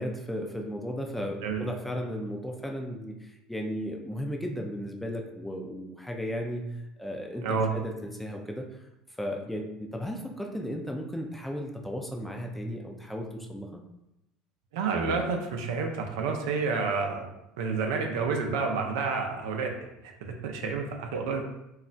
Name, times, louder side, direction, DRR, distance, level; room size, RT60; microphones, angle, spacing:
voice 1, 0.0-6.7 7.0-8.8 9.2-13.8 20.6-20.7, equal, 5° left, 2 dB, 0.5 m, -35 dB
voice 2, 1.4-1.7 7.4-7.7 14.7-17.3 17.6-19.7 20.0-21.4, right 4 dB, 80° right, 3 dB, 0.5 m, -29 dB
2.3 x 2.0 x 3.8 m, 0.87 s
supercardioid pair, 85°, 2 cm